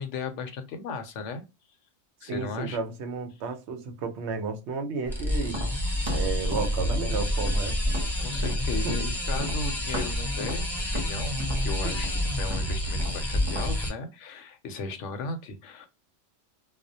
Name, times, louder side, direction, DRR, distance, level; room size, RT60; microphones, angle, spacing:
voice 1, 0.0-1.4 2.2-2.8 8.2-12.1 12.4-15.9, left 4 dB, 75° left, 0.9 m, -36 dB
voice 2, 2.3-5.6 6.1-7.8 8.8-9.0, right 4 dB, 70° right, 0.8 m, -32 dB
sound 1, 5.1-13.9, left 1 dB, ahead, 0.8 m, -28 dB
Tap, 5.4-9.1 9.3-13.7, left 1 dB, 30° right, 0.7 m, -38 dB
2.3 x 2.0 x 2.6 m
omnidirectional pair, 1.3 m